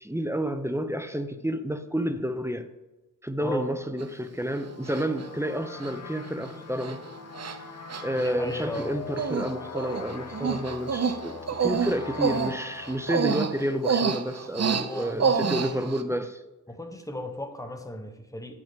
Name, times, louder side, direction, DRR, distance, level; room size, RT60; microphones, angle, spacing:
voice 1, 0.0-2.7 3.2-7.0 8.0-16.4, equal, 10° right, 0.6 m, -30 dB
Human voice, 4.0-4.1 4.9-5.2 5.8-5.9 6.3-6.5 6.8-6.9 7.3-7.6 7.9-8.9 9.2-9.5 9.7-16.0, right 6 dB, 50° right, 0.5 m, -28 dB
sound 1, 4.3-14.6, left 4 dB, 60° left, 0.9 m, -42 dB
voice 2, 8.1-9.0 14.7-15.7 16.7-18.6, left 1 dB, 10° left, 1.0 m, -35 dB
9.1 x 6.5 x 3.5 m
wide cardioid pair, 70°, 33 cm